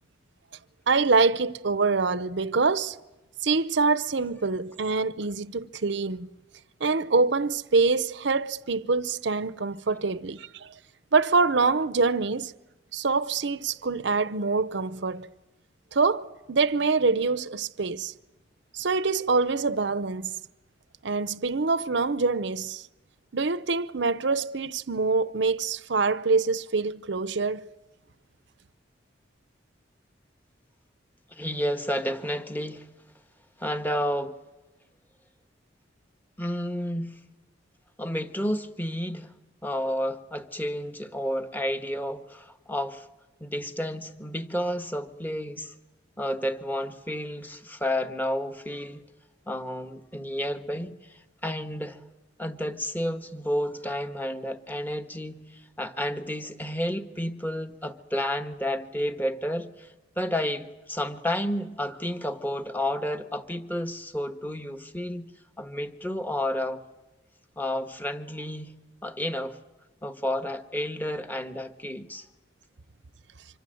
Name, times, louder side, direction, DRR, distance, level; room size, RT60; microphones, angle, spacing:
voice 1, 0.9-3.0 3.4-6.3 6.8-10.7 11.1-12.5 12.9-15.3 15.9-18.1 18.7-20.3 21.0-22.9 23.3-27.7, right 4 dB, 70° right, 0.8 m, -25 dB
voice 2, 31.3-32.9 33.6-34.4 36.4-37.2 38.0-39.3 39.6-43.1 43.4-45.7 46.2-49.0 49.5-52.0 52.4-65.3 65.6-66.8 67.6-68.7 69.0-69.6 70.0-72.3, equal, 10° left, 1.4 m, -31 dB
26.0 x 24.5 x 7.8 m
head